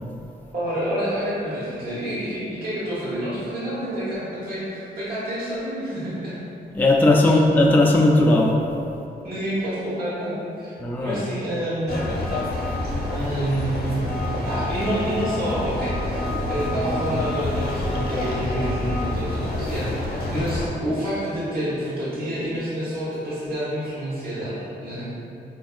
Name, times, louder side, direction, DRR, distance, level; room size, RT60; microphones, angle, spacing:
voice 1, 0.5-6.4 9.2-10.7 11.0-12.1 13.1-14.2 14.5-25.3, equal, 50° right, -12 dB, 1.1 m, -28 dB
voice 2, 6.7-8.6 10.8-11.2, left 2 dB, 10° left, -2 dB, 0.4 m, -17 dB
sound 1, 11.9-20.7, left 1 dB, 50° left, 0.8 m, -27 dB
3.4 x 2.5 x 2.4 m, 2.7 s
supercardioid pair, 50°, 20 cm